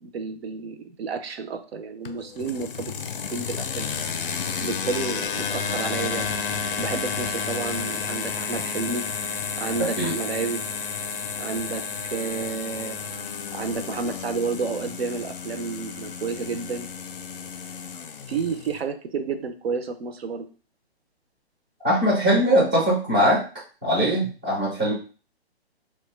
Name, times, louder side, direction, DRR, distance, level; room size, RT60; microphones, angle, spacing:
voice 1, 0.0-2.9 3.3-3.9 4.6-6.3 6.8-9.0 9.6-10.6 11.4-13.0 13.5-16.9 18.3-20.5, right 5 dB, 70° right, 9 dB, 0.5 m, -30 dB
sound 1, 2.0-18.8, left 6 dB, 55° left, 0.4 m, -31 dB
voice 2, 21.8-23.4 23.8-24.9, equal, 10° right, -7 dB, 0.4 m, -21 dB
2.7 x 2.2 x 3.1 m, 0.37 s
hypercardioid pair, 160°, 32 cm